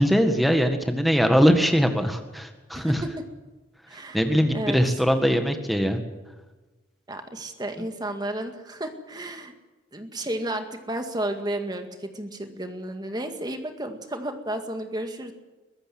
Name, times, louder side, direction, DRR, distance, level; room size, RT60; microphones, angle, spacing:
voice 1, 0.0-3.0 4.1-6.0, equal, ahead, 6 dB, 1.7 m, -21 dB
voice 2, 3.9-4.2 4.5-4.8 7.1-9.5 9.9-15.3, right 1 dB, 20° right, 6 dB, 1.9 m, -32 dB
22.5 x 14.5 x 7.8 m, 1.2 s
head